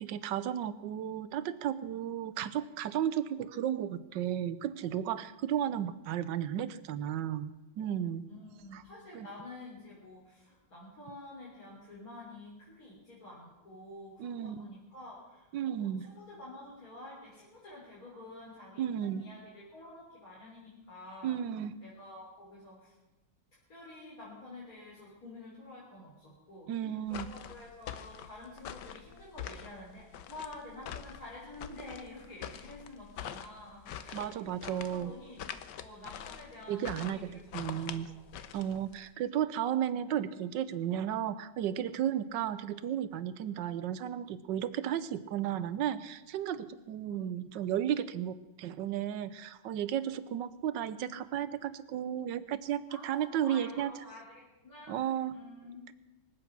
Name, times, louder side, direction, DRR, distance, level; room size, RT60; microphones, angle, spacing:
voice 1, 0.0-8.3 8.7-8.8 9.1-9.3 14.2-14.7 15.5-16.1 18.8-19.2 21.2-21.7 26.7-27.3 34.1-35.1 36.7-38.1 38.5-53.9 54.9-55.3, right 10 dB, 75° right, 15 dB, 1.4 m, -34 dB
voice 2, 8.3-21.4 21.8-22.9 23.7-35.4 35.8-38.2 52.9-55.0 55.3-55.9, left 2 dB, 50° left, -7 dB, 4.3 m, -49 dB
sound 1, 27.1-39.1, left 9 dB, 75° left, 1.4 m, -45 dB
25.0 x 8.5 x 6.0 m, 1.0 s
omnidirectional pair, 2.0 m